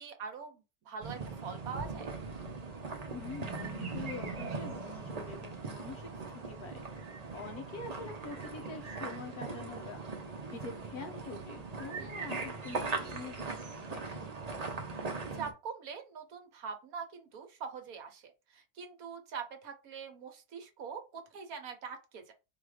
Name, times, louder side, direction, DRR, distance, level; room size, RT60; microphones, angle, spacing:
voice 1, 0.0-2.1 12.0-12.2 15.0-22.3, right 6 dB, 65° right, 1.2 m, -43 dB
sound 1, 1.0-15.5, right 4 dB, 40° right, 0.5 m, -40 dB
voice 2, 3.1-7.0 7.3-10.0 10.5-14.3, left 4 dB, 65° left, 1.5 m, -45 dB
4.1 x 2.5 x 4.8 m
omnidirectional pair, 1.7 m